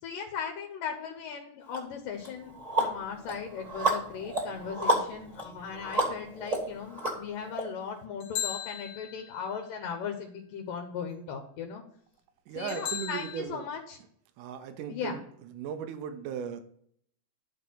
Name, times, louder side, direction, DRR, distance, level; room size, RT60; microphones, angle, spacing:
voice 1, 0.0-11.8 12.5-14.0 14.9-15.2, left 6 dB, 85° left, 4 dB, 2.7 m, -38 dB
sound 1, 1.7-1.8 2.2-7.6, right 1 dB, 15° right, 1.3 m, -31 dB
sound 2, 8.2-9.5 12.7-13.4, left 10 dB, 65° left, 2.0 m, -36 dB
voice 2, 12.5-13.6 14.4-15.2 15.5-16.6, right 8 dB, 75° right, 8 dB, 2.4 m, -37 dB
11.0 x 4.3 x 5.6 m, 0.63 s
omnidirectional pair, 3.8 m